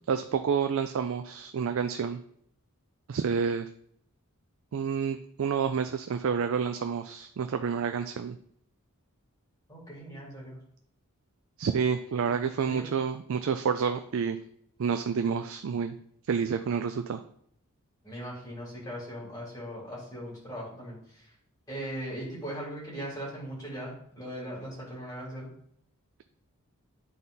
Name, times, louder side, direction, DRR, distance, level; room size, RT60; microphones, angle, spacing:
voice 1, 0.1-2.2 3.1-3.7 4.7-8.4 11.6-14.4 14.8-16.0 16.3-17.2, right 6 dB, 65° right, 8 dB, 0.4 m, -29 dB
voice 2, 9.7-10.6 12.2-12.8 18.0-21.3 21.7-25.5, equal, 20° left, -6 dB, 2.9 m, -39 dB
9.2 x 4.1 x 3.9 m, 0.67 s
head